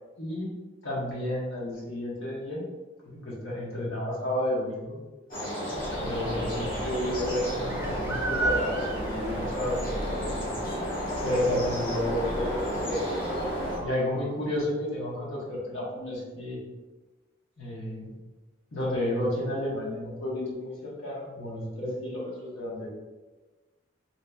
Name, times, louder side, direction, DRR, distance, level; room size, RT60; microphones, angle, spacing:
voice 1, 0.2-0.5 0.8-2.7 3.0-5.0 6.0-10.5 11.2-13.2 13.8-16.6 17.6-18.1 18.7-22.9, left 1 dB, 80° left, -5 dB, 1.1 m, -31 dB
sound 1, 5.3-13.8, equal, 45° left, 1.3 m, -32 dB
sound 2, 5.8-13.9, right 2 dB, 10° right, 0.3 m, -36 dB
4.0 x 2.8 x 2.3 m, 1.2 s
head